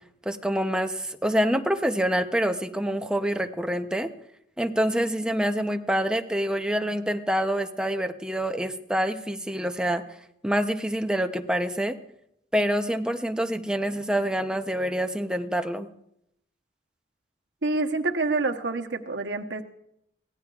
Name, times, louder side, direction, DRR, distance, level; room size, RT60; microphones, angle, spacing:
voice 1, 0.3-4.1 4.6-10.0 10.4-12.0 12.5-15.9, equal, 5° right, 6 dB, 0.7 m, -26 dB
voice 2, 17.6-19.6, right 3 dB, 85° right, 5 dB, 1.0 m, -27 dB
23.0 x 17.0 x 2.4 m, 0.77 s
head